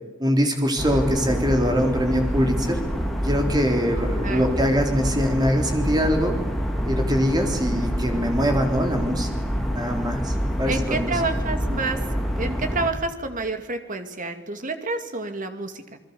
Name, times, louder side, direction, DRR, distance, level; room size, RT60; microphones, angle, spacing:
voice 1, 0.2-2.8 3.2-6.4 6.8-9.3 9.7-11.1, equal, 20° right, 3 dB, 3.8 m, -23 dB
sound 1, 0.8-12.9, equal, ahead, 3.1 m, -27 dB
voice 2, 4.2-4.6 10.7-12.0 12.4-16.0, right 3 dB, 45° right, 7 dB, 2.4 m, -29 dB
29.0 x 21.0 x 7.0 m, 1.1 s
head